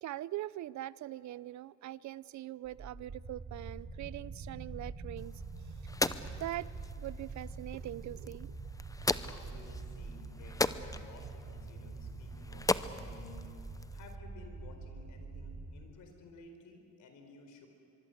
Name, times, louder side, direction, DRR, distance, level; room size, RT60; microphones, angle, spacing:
voice 1, 0.0-5.4 6.4-6.7 7.0-8.6, right 14 dB, 70° right, 20 dB, 0.6 m, -42 dB
sound 1, 2.6-15.9, right 3 dB, 45° right, 3.3 m, -45 dB
sound 2, 5.2-14.2, left 2 dB, 10° left, 0.7 m, -38 dB
voice 2, 9.2-13.5 13.9-17.7, left 4 dB, 80° left, 5 dB, 4.5 m, -55 dB
23.5 x 23.5 x 8.0 m, 2.6 s
cardioid pair, 90°, 30 cm